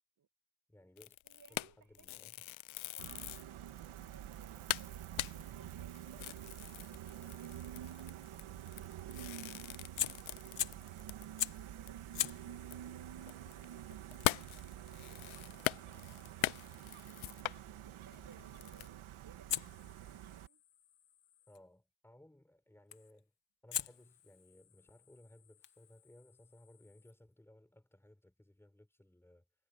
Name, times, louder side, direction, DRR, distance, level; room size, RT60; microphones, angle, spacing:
voice 1, 0.7-1.2 1.5-2.4 21.5-23.3 23.6-29.4, left 1 dB, 5° left, 6.1 m, -61 dB
sound 1, 1.0-3.5 4.0-4.1 4.4-4.5 4.7-11.6 11.9-12.0 12.3-17.6 18.1-18.9, left 18 dB, 75° left, 0.5 m, -41 dB
voice 2, 1.2-2.1 2.8-8.1 9.0-15.2 17.0-19.5 20.0-20.6, right 7 dB, 40° right, 6.3 m, -65 dB
Gull seagull, 3.0-20.5, right 11 dB, 85° right, 1.7 m, -48 dB
Fire, 10.0-10.9 11.4-11.7 12.1-17.0 19.5-21.6 22.9-23.2 23.7-27.1, left 11 dB, 60° left, 1.4 m, -44 dB
wide cardioid pair, 180°, 48 cm